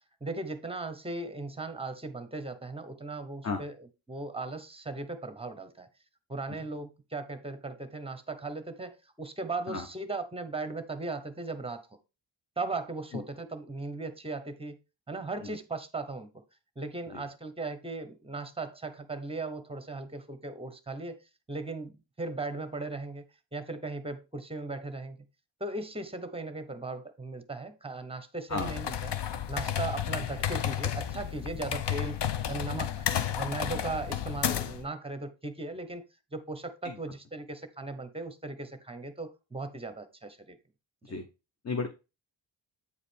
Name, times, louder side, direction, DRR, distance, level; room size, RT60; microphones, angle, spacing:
voice 1, 0.2-5.9 6.3-11.8 12.6-14.8 15.1-16.4 16.8-21.2 21.5-23.2 23.5-25.2 25.6-29.1 29.5-32.2 32.5-33.0 33.4-36.0 36.3-40.6, right 3 dB, 10° right, 0.8 m, -37 dB
voice 2, 3.4-3.6 9.7-9.9 13.1-13.2 15.4-15.5 17.1-17.2 28.5-28.7 36.8-37.0 41.0-41.3 41.6-41.9, left 4 dB, 35° left, 0.8 m, -33 dB
sound 1, 28.5-34.8, left 9 dB, 60° left, 0.7 m, -32 dB
8.4 x 4.9 x 3.4 m
wide cardioid pair, 160°, 47 cm